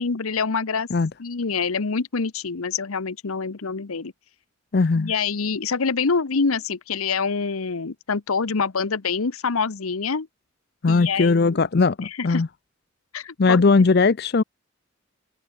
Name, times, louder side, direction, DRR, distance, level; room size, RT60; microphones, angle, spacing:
voice 1, 0.0-0.9 1.2-4.1 4.9-10.3 10.9-11.7 12.0-12.4 13.1-13.6, left 5 dB, 85° left, 0.9 m, -26 dB
voice 2, 4.7-5.1 10.8-12.5 13.4-14.4, left 4 dB, 50° left, 0.5 m, -19 dB
head